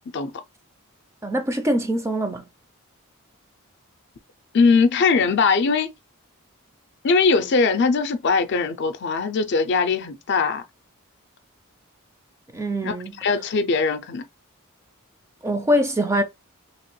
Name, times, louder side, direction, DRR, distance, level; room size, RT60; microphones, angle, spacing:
voice 1, 1.2-2.4 12.5-13.1 15.4-16.2, equal, 15° right, 0.3 m, -23 dB
voice 2, 4.5-5.9 7.0-10.6 12.8-14.2, left 4 dB, 50° left, 0.4 m, -20 dB
2.9 x 2.9 x 3.0 m
head